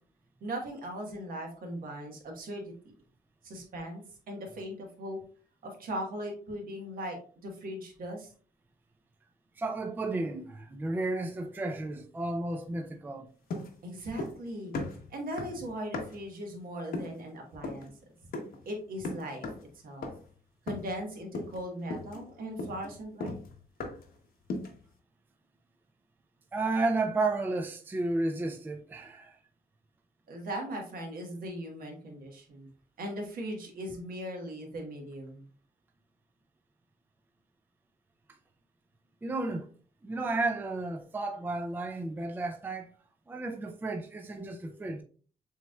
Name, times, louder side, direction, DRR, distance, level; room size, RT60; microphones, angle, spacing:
voice 1, 0.4-2.7 3.4-5.2 5.6-8.3 13.8-14.7 15.1-17.9 18.6-19.5 19.8-20.1 20.7-23.4 30.3-32.7 33.0-35.5, equal, 65° right, 1.4 m, -39 dB
voice 2, 9.6-13.3 26.5-29.4 39.2-39.7 40.0-42.9 43.3-45.0, right 2 dB, 10° right, 0.4 m, -32 dB
sound 1, 13.5-14.5 14.7-16.3 16.9-17.2 17.6-17.9 18.3-18.6 19.0-19.7 20.0-20.3 20.7-21.0 21.3-21.6 21.9-24.1 24.5-24.8, left 2 dB, 70° left, 1.0 m, -38 dB
7.0 x 3.0 x 2.3 m
cardioid pair, 145°, 16 cm